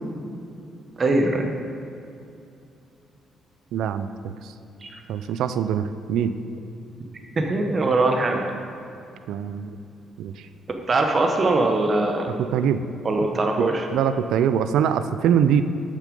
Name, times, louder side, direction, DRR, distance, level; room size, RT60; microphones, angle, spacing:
voice 1, 1.0-1.5 4.8-4.9 7.4-8.4 10.9-12.3 13.0-13.9, right 2 dB, 35° right, 3 dB, 0.9 m, -21 dB
voice 2, 3.7-4.3 5.1-6.4 9.3-9.8 10.2-10.3 12.4-12.8 13.6-13.7 13.9-15.6, right 8 dB, 85° right, 11 dB, 0.4 m, -23 dB
8.4 x 6.5 x 5.3 m, 2.6 s
cardioid pair, 90°, 0 cm